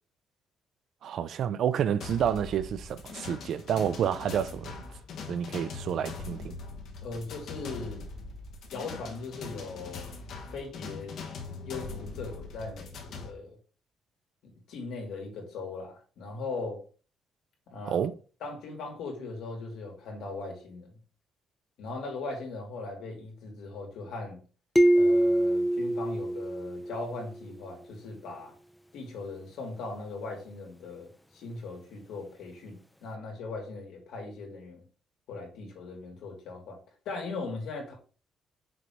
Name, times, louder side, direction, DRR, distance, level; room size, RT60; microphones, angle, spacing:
voice 1, 1.0-4.8 5.3-6.6 17.9-18.1, right 9 dB, 60° right, 0.5 m, -29 dB
sound 1, 2.0-13.3, left 4 dB, 65° left, 1.3 m, -41 dB
voice 2, 7.0-8.0 8.7-10.2 10.5-11.1 11.6-13.6 14.4-16.8 17.7-18.1 18.4-20.9 21.8-24.4 24.9-28.5 28.9-34.8 35.3-36.8 37.0-37.9, left 3 dB, 85° left, 2.7 m, -39 dB
sound 2, 24.8-27.3, right 1 dB, 5° left, 0.5 m, -24 dB
6.2 x 4.0 x 4.5 m
cardioid pair, 135°, 0 cm